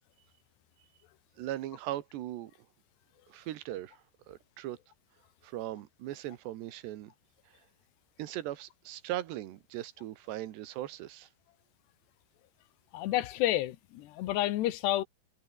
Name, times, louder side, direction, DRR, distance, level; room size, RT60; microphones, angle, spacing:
voice 1, 1.4-2.5 3.3-4.8 5.4-7.1 8.2-11.3, right 14 dB, 75° right, 3.4 m, -39 dB
voice 2, 12.9-15.0, left 14 dB, 75° left, 3.2 m, -30 dB
omnidirectional pair, 5.0 m